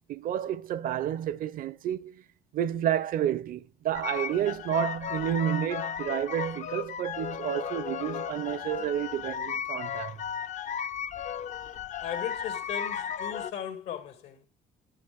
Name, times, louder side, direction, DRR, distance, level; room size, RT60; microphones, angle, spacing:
voice 1, 0.1-2.2 2.5-10.2, right 10 dB, 55° right, 0.5 m, -30 dB
sound 1, 3.9-13.5, left 8 dB, 45° left, 0.4 m, -35 dB
voice 2, 12.0-14.5, left 9 dB, 85° left, 1.9 m, -37 dB
9.8 x 6.8 x 3.4 m
cardioid pair, 110°, 17 cm